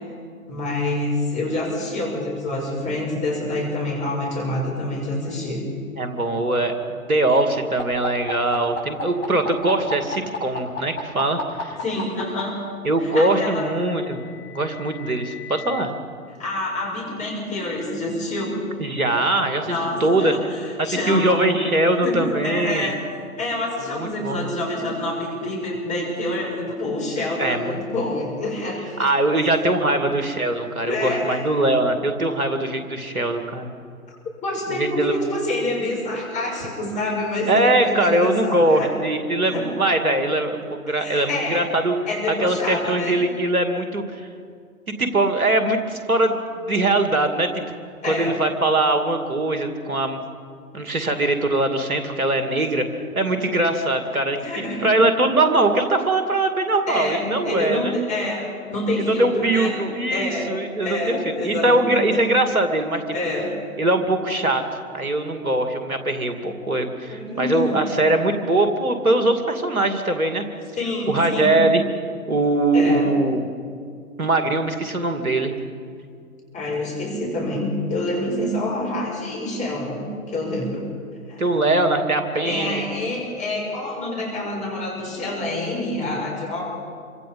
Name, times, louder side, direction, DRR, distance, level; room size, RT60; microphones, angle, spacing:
voice 1, 0.5-5.6 11.8-12.6 13.0-13.7 16.4-18.6 19.6-21.5 22.0-23.0 23.4-29.1 30.8-31.4 33.0-33.2 34.4-38.9 39.4-39.7 40.9-41.7 42.1-43.2 48.0-48.4 54.3-54.9 56.9-59.8 60.1-62.3 63.1-63.6 67.1-67.8 70.8-71.6 72.7-73.1 76.5-80.9 81.3-81.5 82.4-86.7, left 1 dB, 15° left, -2 dB, 6.6 m, -27 dB
voice 2, 6.0-11.8 12.8-14.2 14.5-15.9 18.8-19.7 20.0-20.3 20.8-22.9 23.9-24.5 27.4-28.0 29.0-33.7 34.7-35.2 37.5-42.0 42.4-44.3 45.0-47.6 48.0-50.2 50.7-52.9 53.2-54.4 54.8-57.9 59.0-63.0 63.8-64.6 64.9-70.4 71.1-71.8 72.3-73.4 74.2-75.5 81.4-82.8, right 2 dB, 80° right, 6 dB, 2.5 m, -21 dB
sound 1, 7.8-12.4 13.6-15.8, left 4 dB, 50° left, 7.5 m, -33 dB
27.0 x 25.0 x 5.5 m, 2.3 s
figure-of-eight pair, 120°, 43 cm